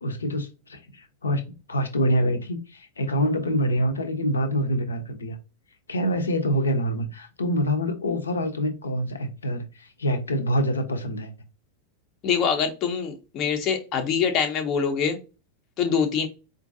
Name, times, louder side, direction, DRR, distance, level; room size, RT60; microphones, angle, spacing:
voice 1, 0.0-5.4 5.9-11.3, equal, 75° left, 0.7 m, -26 dB
voice 2, 12.2-15.2 15.8-16.3, left 6 dB, 35° left, 0.6 m, -24 dB
4.5 x 2.5 x 2.6 m
figure-of-eight pair, 90°, 0 cm